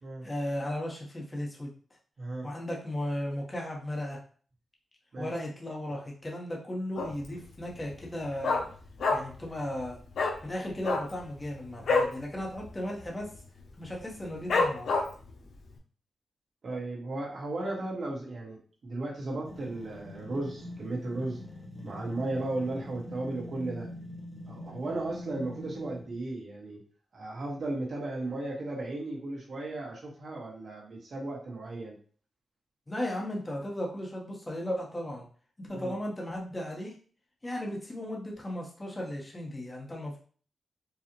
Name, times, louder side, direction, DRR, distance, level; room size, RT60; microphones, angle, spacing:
voice 1, 0.2-1.7 2.4-4.2 5.2-8.6 9.1-10.0 10.4-13.3 13.8-14.9 32.9-35.3 35.6-36.9 37.4-40.2, left 1 dB, 20° left, -1 dB, 1.1 m, -35 dB
voice 2, 2.2-2.5 5.1-5.3 16.6-21.4 21.8-23.9 24.5-26.8 27.1-31.9 35.7-35.9, right 2 dB, 60° right, -3 dB, 1.6 m, -35 dB
Dog, 6.9-7.4 7.7-7.8 8.0-9.5 9.7-9.9 10.1-10.4 10.8-12.2 12.5-12.7 13.0-13.4 13.8-13.9 14.5-15.3 15.8-15.9, left 3 dB, 85° left, 0.7 m, -27 dB
sound 1, 19.4-26.2, left 1 dB, 15° right, 1.4 m, -44 dB
4.7 x 2.4 x 3.1 m, 0.42 s
wide cardioid pair, 105°, 0 cm